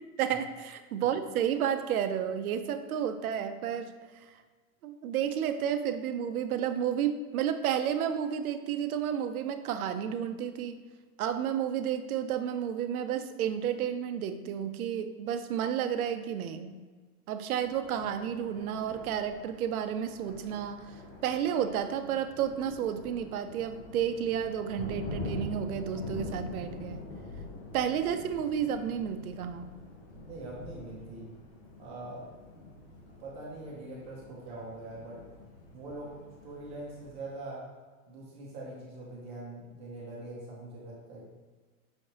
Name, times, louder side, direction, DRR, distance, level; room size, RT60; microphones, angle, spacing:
voice 1, 0.2-3.9 4.8-10.8 11.2-16.7 17.3-20.9 21.2-27.0 27.7-29.7, right 9 dB, 80° right, 9 dB, 0.6 m, -31 dB
Thunder, 17.6-37.3, left 2 dB, 25° left, 0.6 m, -45 dB
voice 2, 30.2-31.3 31.8-32.7 33.1-35.2 35.7-36.1 36.4-37.6 38.1-41.2, right 2 dB, 15° right, -4 dB, 0.5 m, -43 dB
5.6 x 3.2 x 2.8 m, 1.4 s
hypercardioid pair, 155°, 43 cm